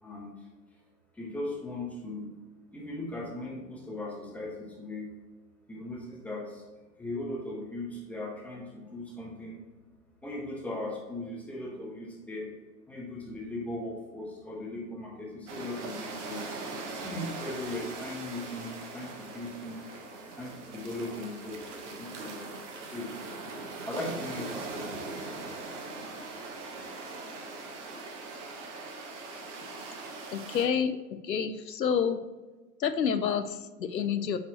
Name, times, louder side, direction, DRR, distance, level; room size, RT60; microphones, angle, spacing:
voice 1, 0.0-0.3 1.1-2.3 2.7-5.1 5.7-6.6 7.0-9.6 10.2-12.5 12.9-16.5 16.9-19.8 20.4-22.5 22.8-23.1 23.9-25.3, left 1 dB, 5° left, -4 dB, 1.1 m, -38 dB
sound 1, 15.5-30.7, right 3 dB, 45° right, 1.2 m, -41 dB
voice 2, 30.3-32.2 32.8-34.4, left 7 dB, 85° left, 10 dB, 0.7 m, -29 dB
8.6 x 4.2 x 2.9 m, 1.3 s
hypercardioid pair, 120°, 49 cm